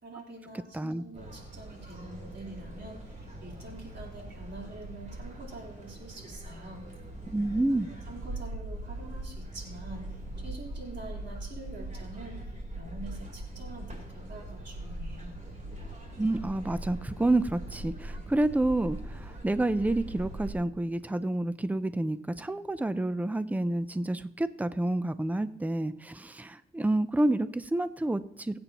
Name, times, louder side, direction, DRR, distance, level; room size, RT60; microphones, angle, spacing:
voice 1, 0.0-6.9 8.1-12.4 12.8-15.4, right 2 dB, 60° right, -2 dB, 4.0 m, -45 dB
sound 1, 1.1-20.5, right 1 dB, 40° right, 3.8 m, -41 dB
voice 2, 7.3-7.9 16.2-28.6, right 2 dB, 10° right, 12 dB, 0.6 m, -29 dB
25.0 x 8.5 x 3.0 m, 0.80 s
cardioid pair, 90°, 20 cm